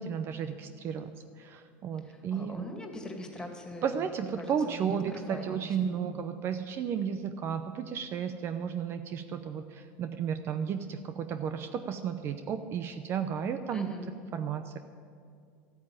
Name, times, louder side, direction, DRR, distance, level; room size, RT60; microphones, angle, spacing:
voice 1, 0.0-2.7 3.8-13.9 14.3-14.8, right 7 dB, 40° right, 9 dB, 0.7 m, -33 dB
voice 2, 2.0-4.1 4.4-6.0 13.7-14.1, left 1 dB, 10° left, 3 dB, 2.3 m, -42 dB
13.5 x 9.3 x 8.9 m, 2.3 s
supercardioid pair, 120°, 6 cm